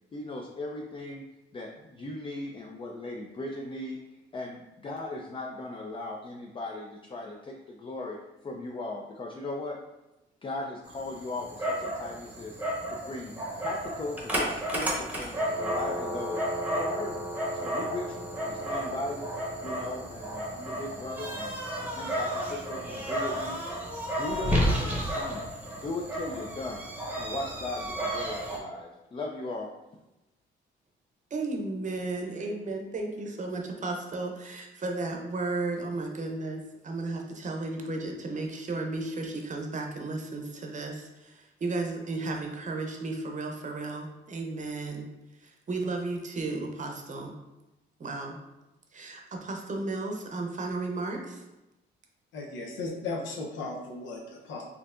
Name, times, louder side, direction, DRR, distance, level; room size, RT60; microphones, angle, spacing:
voice 1, 0.1-1.2 1.5-4.0 4.3-8.2 8.4-9.8 10.4-12.6 12.9-13.3 13.6-16.4 16.7-17.3 17.5-19.3 19.6-23.6 24.2-26.8 27.2-29.7, left 2 dB, 25° left, 0 dB, 0.4 m, -38 dB
Dog, 10.9-28.6, equal, 10° right, 0.9 m, -32 dB
voice 2, 31.3-45.1 45.4-47.3 48.0-48.4 48.9-51.4, right 3 dB, 40° right, 2 dB, 0.7 m, -34 dB
voice 3, 52.3-54.6, left 3 dB, 70° left, -1 dB, 0.7 m, -36 dB
4.4 x 2.7 x 2.4 m, 0.98 s
cardioid pair, 90°, 20 cm